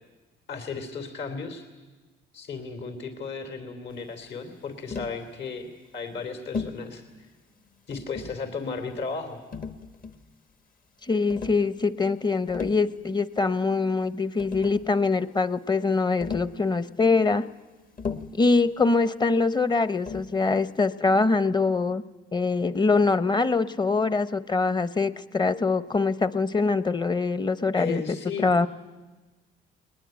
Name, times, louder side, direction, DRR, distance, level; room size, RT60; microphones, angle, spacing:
voice 1, 0.5-1.7 2.3-7.0 7.9-9.4 27.7-28.7, left 4 dB, 65° left, 7 dB, 3.2 m, -35 dB
Tap, 4.9-5.2 6.5-6.9 7.9-8.5 9.5-10.3 11.3-11.6 12.3-12.9 14.0-14.1 14.4-14.9 16.2-16.6 18.0-18.4 20.1-20.4, left 5 dB, 45° left, 1.3 m, -35 dB
voice 2, 11.1-17.4 18.4-22.0 22.3-28.0 28.4-28.7, left 3 dB, 20° left, 14 dB, 0.8 m, -23 dB
21.0 x 20.0 x 9.1 m, 1.2 s
cardioid pair, 90°, 20 cm